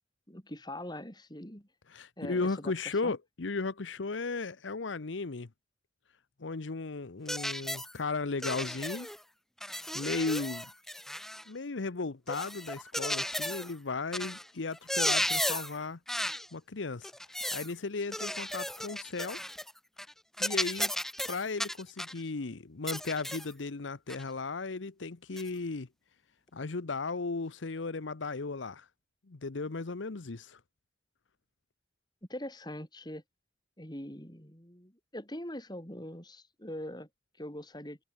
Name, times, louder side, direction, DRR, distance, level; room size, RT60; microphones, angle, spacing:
voice 1, 0.3-1.7 2.2-2.7 3.0-3.1 32.3-33.2 33.8-37.1 37.4-38.0, left 1 dB, 20° left, 6.0 m, -42 dB
voice 2, 1.9-5.5 6.4-9.1 9.9-10.7 11.5-16.0 16.5-17.1 17.5-19.4 20.4-20.9 21.3-25.9 26.5-28.9 29.3-30.6, left 3 dB, 85° left, 0.9 m, -35 dB
sound 1, 7.3-7.9 8.4-9.2 9.6-11.5 12.3-13.7 14.1-14.4 14.7-15.8 16.1-16.5 17.0-17.7 18.1-19.7 20.0-20.1 20.4-22.2 22.9-23.5 24.1-24.2 25.4-25.5, left 1 dB, ahead, 1.1 m, -34 dB
head